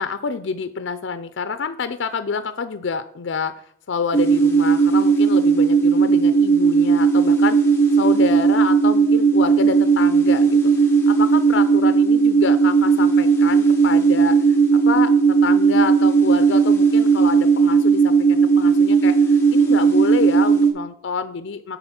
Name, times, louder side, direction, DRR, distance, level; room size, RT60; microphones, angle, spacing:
voice 1, 0.0-3.6 3.9-7.6 8.0-10.6 11.1-21.8, left 5 dB, 75° left, 11 dB, 0.5 m, -27 dB
sound 1, 4.1-20.7, right 5 dB, 15° left, 1.2 m, -16 dB
9.8 x 4.1 x 5.8 m, 0.68 s
head